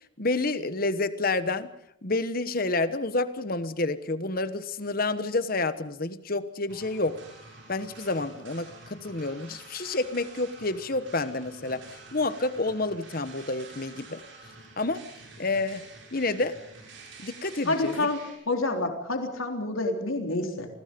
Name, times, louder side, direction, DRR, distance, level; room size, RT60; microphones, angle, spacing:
voice 1, 0.2-1.7 2.0-7.2 7.7-11.8 12.1-14.2 14.8-15.0 15.4-15.8 16.1-16.6 17.2-18.1, left 2 dB, 45° left, 13 dB, 1.2 m, -29 dB
sound 1, 6.7-18.3, right 3 dB, 65° right, 7.7 m, -48 dB
voice 2, 17.7-18.2 18.5-20.7, left 2 dB, 85° left, 4 dB, 3.6 m, -28 dB
28.5 x 20.5 x 5.3 m, 0.73 s
head